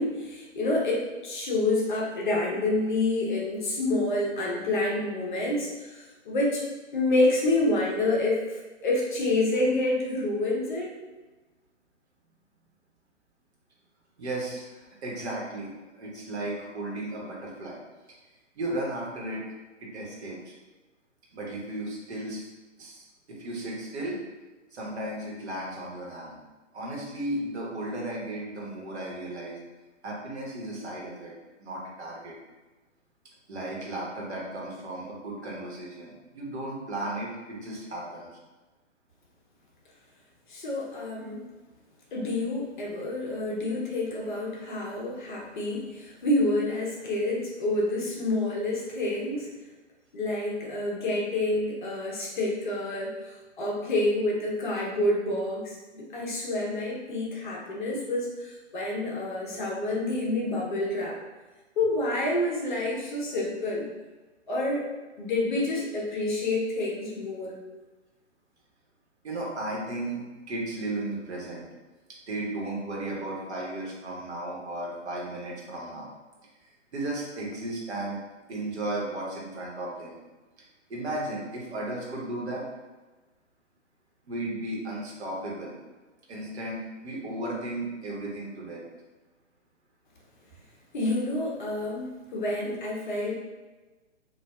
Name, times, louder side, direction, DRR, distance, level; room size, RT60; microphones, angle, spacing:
voice 1, 0.0-6.6 6.9-10.9 40.5-41.4 42.1-49.5 50.1-61.1 61.8-63.9 64.5-64.8 65.2-67.5 90.9-93.3, left 2 dB, 40° left, -3 dB, 0.7 m, -28 dB
voice 2, 14.2-17.8 18.5-19.4 19.8-20.5 21.3-22.5 22.8-24.2 24.7-26.4 26.7-29.6 30.0-31.3 31.6-32.3 33.5-38.3 69.2-71.7 72.3-76.1 76.9-78.2 78.5-80.2 80.6-80.7 80.9-82.6 84.3-85.8 86.3-88.8, right 1 dB, 60° right, -3 dB, 1.1 m, -35 dB
4.3 x 2.4 x 2.3 m, 1.2 s
figure-of-eight pair, 135°, 37 cm